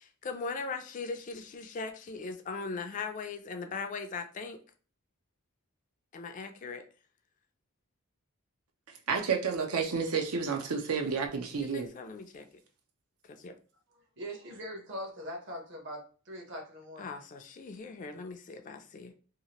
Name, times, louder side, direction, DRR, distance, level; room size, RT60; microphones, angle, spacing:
voice 1, 0.0-4.6 6.1-6.8 11.6-12.5 13.3-13.5 17.0-19.1, left 4 dB, 35° left, 0.3 m, -39 dB
voice 2, 9.1-11.9, right 5 dB, 85° right, 0.6 m, -30 dB
voice 3, 14.2-17.1, equal, 55° right, 0.9 m, -41 dB
2.8 x 2.4 x 2.8 m
head